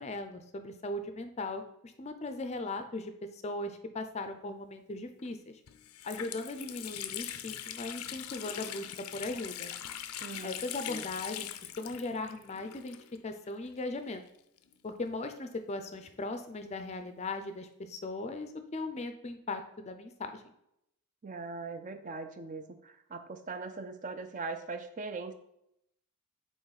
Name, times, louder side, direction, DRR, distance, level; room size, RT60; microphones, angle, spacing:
voice 1, 0.0-5.6 6.0-9.7 10.4-11.5 11.8-13.0 13.2-14.2 14.8-20.4, left 2 dB, 30° left, 8 dB, 0.4 m, -38 dB
Water tap faucet, 5.2-5.3 5.7-13.4 13.6-13.7 14.6-16.1, left 11 dB, 90° left, 0.5 m, -42 dB
voice 2, 10.2-10.6 10.9-11.0 21.2-25.3, right 3 dB, 35° right, 9 dB, 0.4 m, -40 dB
7.9 x 3.1 x 4.0 m, 0.78 s
head